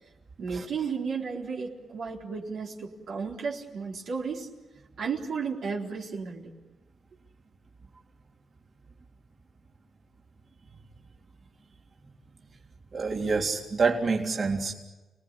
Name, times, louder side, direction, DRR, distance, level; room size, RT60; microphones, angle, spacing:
voice 1, 0.4-4.5 5.0-6.5, right 5 dB, 75° right, -2 dB, 4.1 m, -33 dB
voice 2, 12.9-14.7, right 4 dB, 50° right, -1 dB, 3.7 m, -27 dB
30.0 x 19.5 x 8.7 m, 1.1 s
cardioid pair, 75°, 0 cm